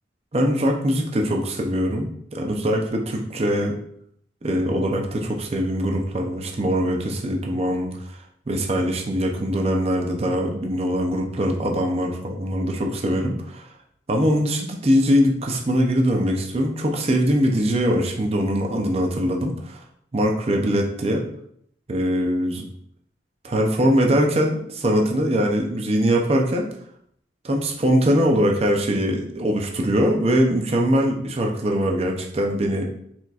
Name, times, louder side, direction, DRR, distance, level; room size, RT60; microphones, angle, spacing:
voice 1, 0.3-3.7 4.4-13.7 14.1-19.8 20.1-21.2 21.9-22.6 23.4-26.7 27.4-32.9, equal, 35° right, 1 dB, 0.5 m, -22 dB
4.3 x 4.1 x 2.4 m, 0.69 s
head